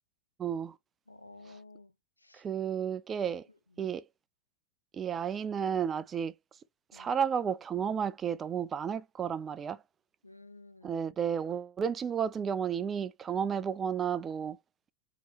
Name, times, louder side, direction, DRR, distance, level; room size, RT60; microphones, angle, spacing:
voice 1, 0.4-0.7 2.3-3.4 3.8-4.0 4.9-6.3 6.9-9.8 10.8-14.6, right 7 dB, 20° right, 0.5 m, -32 dB
voice 2, 1.1-1.9 2.2-2.4 3.8-3.9 6.9-7.1 10.2-11.0, left 2 dB, 85° left, 0.7 m, -53 dB
3.8 x 3.1 x 4.1 m
figure-of-eight pair, 90°, 0 cm